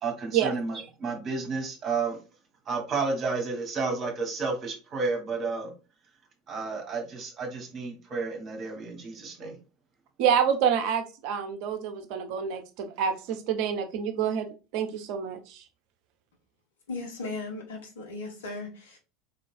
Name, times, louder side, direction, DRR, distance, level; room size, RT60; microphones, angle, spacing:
voice 1, 0.0-2.2 2.6-5.7 6.5-9.6, right 4 dB, 35° right, 3 dB, 1.5 m, -31 dB
voice 2, 10.2-14.5 14.7-15.6, right 8 dB, 55° right, 7 dB, 0.7 m, -27 dB
voice 3, 16.9-19.0, left 3 dB, 65° left, 1 dB, 1.4 m, -37 dB
4.2 x 3.8 x 2.6 m, 0.32 s
figure-of-eight pair, 75°, 0 cm